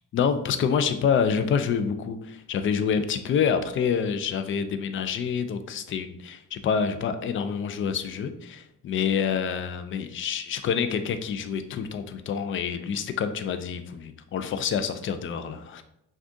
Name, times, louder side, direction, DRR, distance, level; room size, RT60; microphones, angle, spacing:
voice 1, 0.1-15.8, left 7 dB, 40° left, 9 dB, 0.4 m, -27 dB
6.0 x 2.4 x 2.6 m, 0.79 s
cardioid pair, 115°, 33 cm